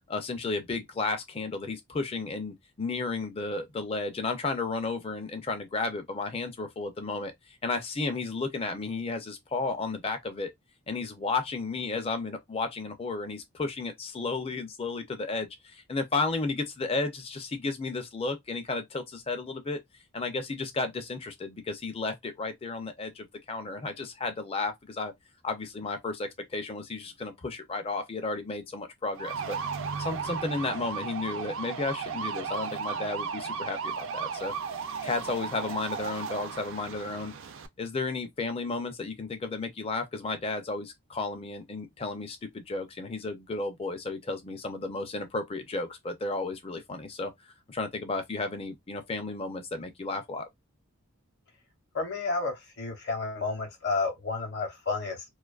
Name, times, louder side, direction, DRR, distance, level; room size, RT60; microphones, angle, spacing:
voice 1, 0.1-10.5 10.9-19.8 20.1-25.1 25.4-29.6 30.0-34.5 35.0-37.3 37.8-47.3 47.7-50.5, left 3 dB, 25° left, 0.4 m, -33 dB
sound 1, 29.2-37.7, right 6 dB, 55° right, 0.4 m, -35 dB
voice 2, 51.9-55.2, left 3 dB, 50° left, 0.8 m, -31 dB
2.5 x 2.3 x 2.3 m
head